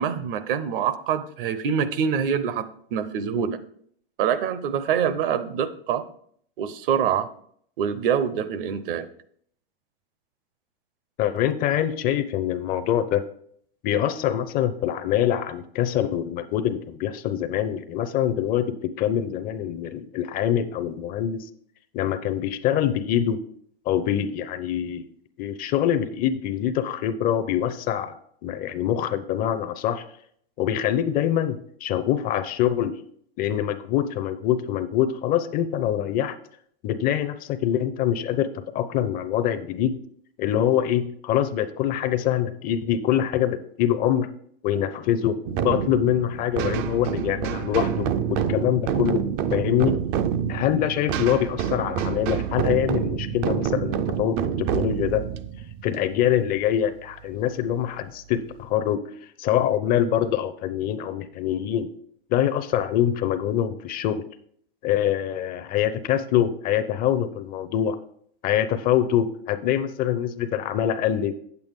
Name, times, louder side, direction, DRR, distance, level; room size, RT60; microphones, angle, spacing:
voice 1, 0.0-3.6 4.2-6.0 6.6-7.3 7.8-9.1, right 8 dB, 60° right, 13 dB, 0.9 m, -25 dB
voice 2, 11.2-13.2 13.8-21.5 21.9-23.4 23.9-25.1 25.4-28.1 28.4-30.0 30.6-33.0 33.4-36.4 36.8-40.0 40.4-44.3 44.6-49.2 49.5-50.0 50.5-55.3 55.8-59.0 59.4-61.9 62.3-64.2 64.8-68.0 68.4-71.4, left 10 dB, 30° left, 12 dB, 0.5 m, -24 dB
sound 1, 45.5-56.9, right 9 dB, 30° right, 0.4 m, -27 dB
8.6 x 8.2 x 3.6 m, 0.64 s
hypercardioid pair, 135°, 30 cm